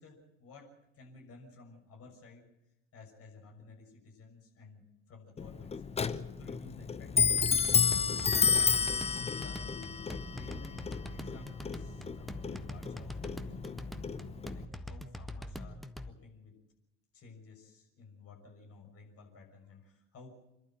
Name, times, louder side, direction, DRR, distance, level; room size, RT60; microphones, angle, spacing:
voice 1, 0.0-2.5 2.9-8.4 8.9-10.8 11.1-13.6 14.5-16.6 17.1-20.4, left 3 dB, 40° left, 1 dB, 6.3 m, -54 dB
Clock, 5.4-14.6, left 6 dB, 15° left, 0.9 m, -31 dB
sound 1, 7.4-16.1, left 1 dB, ahead, 1.3 m, -43 dB
27.5 x 12.0 x 9.0 m, 0.89 s
figure-of-eight pair, 65°, 36 cm